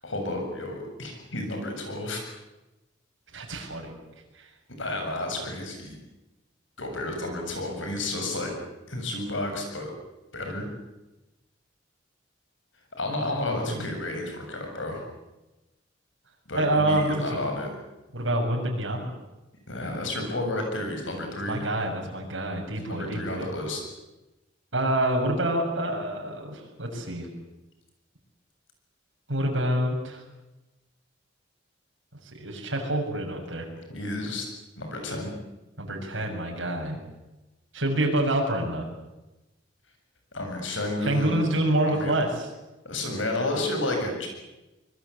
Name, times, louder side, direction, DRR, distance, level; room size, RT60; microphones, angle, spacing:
voice 1, 0.0-2.2 4.8-6.0 6.8-8.5 8.9-9.9 10.3-10.7 13.0-15.0 16.5-17.7 19.7-21.6 22.9-23.8 33.9-34.5 34.8-35.3 40.3-41.4 41.8-42.1 42.8-44.3, left 2 dB, 80° left, 3 dB, 7.4 m, -31 dB
voice 2, 3.3-3.9 4.4-4.5 13.4-13.7 16.5-17.4 18.1-19.1 21.5-23.5 24.7-27.3 29.3-30.2 32.3-33.7 35.8-37.0 37.7-38.9 41.0-42.5, right 1 dB, 75° right, 0 dB, 6.7 m, -27 dB
25.0 x 21.5 x 8.3 m, 1.0 s
head